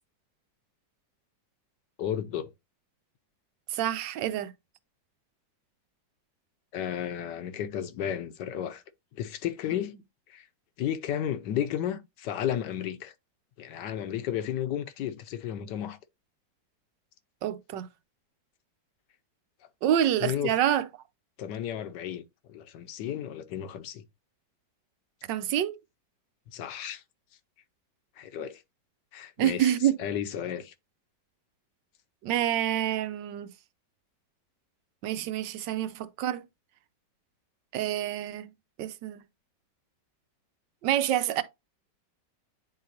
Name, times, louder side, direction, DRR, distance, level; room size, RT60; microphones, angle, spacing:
voice 1, 2.0-2.5 6.7-8.8 9.1-9.9 10.3-10.5 10.8-13.1 13.6-16.0 20.2-20.5 21.4-22.2 22.5-24.0 26.5-27.0 28.2-28.6 29.1-29.7 30.0-30.7, left 10 dB, 75° left, 1.3 m, -33 dB
voice 2, 3.7-4.5 17.4-17.9 19.8-20.8 25.3-25.8 29.4-29.9 32.2-33.5 35.0-36.4 37.7-38.5 38.8-39.2 40.8-41.4, right 11 dB, 85° right, 1.3 m, -27 dB
9.3 x 3.8 x 2.7 m
omnidirectional pair, 1.9 m